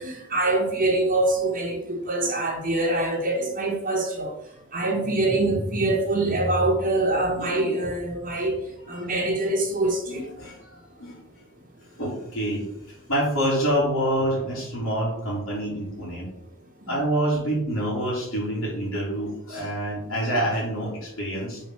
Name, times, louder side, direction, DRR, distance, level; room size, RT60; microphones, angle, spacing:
voice 1, 0.0-4.3 4.7-8.5 8.9-10.2, right 2 dB, 40° right, 1.3 m, -24 dB
voice 2, 7.3-7.8 9.0-9.1 10.1-11.2 11.9-16.3 16.9-21.6, right 1 dB, 80° left, 2.8 m, -27 dB
5.3 x 4.4 x 5.9 m
head